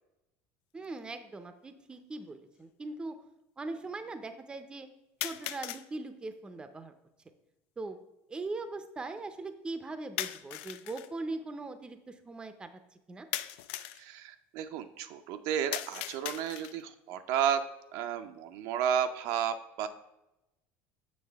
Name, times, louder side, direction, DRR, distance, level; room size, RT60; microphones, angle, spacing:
voice 1, 0.7-3.2 3.6-4.9 5.2-6.9 7.8-8.0 8.3-12.7 13.1-13.3, right 3 dB, 15° right, 9 dB, 0.5 m, -40 dB
sound 1, 0.8-0.9 1.9-2.0 5.2-5.9 10.2-11.1 13.3-14.0 15.7-16.9, left 14 dB, 85° left, 0.4 m, -38 dB
voice 2, 14.0-17.6 17.9-19.9, right 9 dB, 70° right, 8 dB, 0.5 m, -32 dB
7.4 x 5.9 x 3.4 m, 0.93 s
cardioid pair, 135°, 6 cm